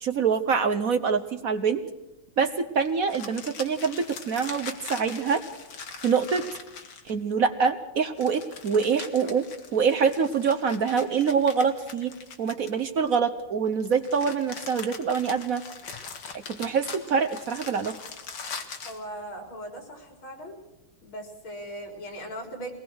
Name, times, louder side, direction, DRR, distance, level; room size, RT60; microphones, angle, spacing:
voice 1, 0.0-1.8 2.4-5.4 6.0-6.5 7.0-9.5 9.7-15.6 16.3-18.0, right 6 dB, 55° right, 9 dB, 1.1 m, -25 dB
sound 1, 3.0-7.3 8.2-13.1 13.8-19.0, left 5 dB, 55° left, 2.2 m, -41 dB
voice 2, 18.8-20.6 21.0-22.7, right 1 dB, 75° left, 3 dB, 4.9 m, -39 dB
22.0 x 19.0 x 6.4 m, 1.0 s
omnidirectional pair, 2.2 m